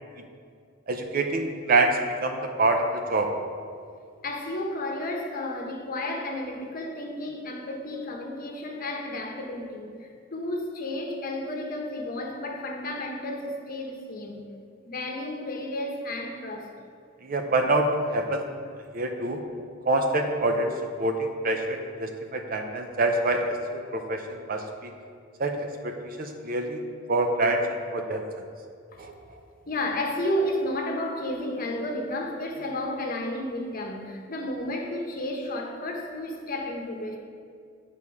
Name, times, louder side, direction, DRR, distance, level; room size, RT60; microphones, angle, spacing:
voice 1, 0.9-3.3 17.2-18.4 18.9-19.4 19.8-20.7 21.0-24.9 25.4-26.8 27.1-28.2 29.0-29.1, right 2 dB, 50° right, 0.6 m, -26 dB
voice 2, 4.2-14.5 14.9-16.7 28.9-29.0 29.7-37.2, left 1 dB, 45° left, 0.9 m, -32 dB
9.0 x 4.2 x 4.8 m
head